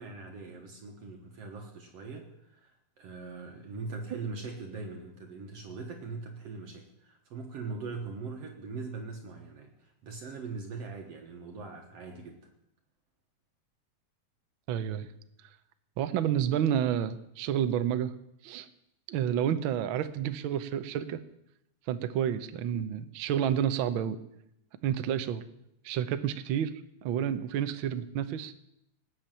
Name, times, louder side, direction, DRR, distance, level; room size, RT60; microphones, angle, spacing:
voice 1, 0.0-12.5, right 4 dB, 60° right, 3 dB, 2.2 m, -41 dB
voice 2, 14.7-15.1 16.0-18.1 18.4-18.7 19.1-21.2 21.9-24.2 24.8-25.4 25.8-26.7 27.0-28.5, right 9 dB, 85° right, 11 dB, 1.1 m, -29 dB
19.0 x 7.5 x 9.1 m, 0.80 s
omnidirectional pair, 3.5 m